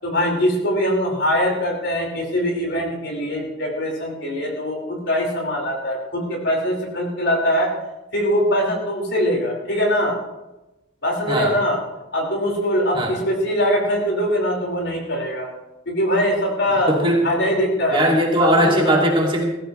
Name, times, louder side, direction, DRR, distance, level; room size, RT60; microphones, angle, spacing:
voice 1, 0.0-7.7 8.1-10.2 11.0-11.8 12.1-15.5 15.8-18.1 18.4-19.0, equal, 60° left, -1 dB, 5.0 m, -22 dB
voice 2, 11.3-11.6 12.9-13.2 16.9-17.3 17.9-19.5, right 1 dB, 25° right, -1 dB, 2.5 m, -19 dB
20.0 x 15.5 x 3.3 m, 1.0 s
head